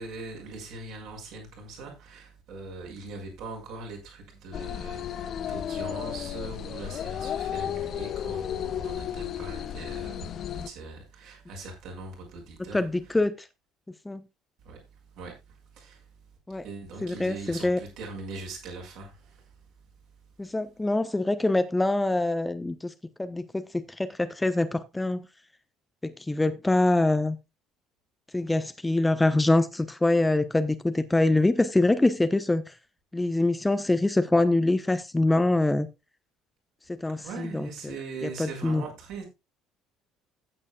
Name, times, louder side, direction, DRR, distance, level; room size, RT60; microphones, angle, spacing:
voice 1, 0.0-12.8 14.6-14.8 15.1-16.1 16.6-19.6 37.2-39.2, right 3 dB, 55° right, 6.3 m, -41 dB
sound 1, 4.5-10.7, left 9 dB, 45° left, 0.8 m, -33 dB
voice 2, 12.7-13.4 14.0-14.2 16.5-16.6 17.0-17.8 20.4-22.9 23.2-25.3 26.0-27.4 28.3-32.7 33.1-35.9 37.0-37.9 38.2-38.8, left 2 dB, 10° left, 1.0 m, -24 dB
15.5 x 8.8 x 2.4 m
figure-of-eight pair, 55°, 0 cm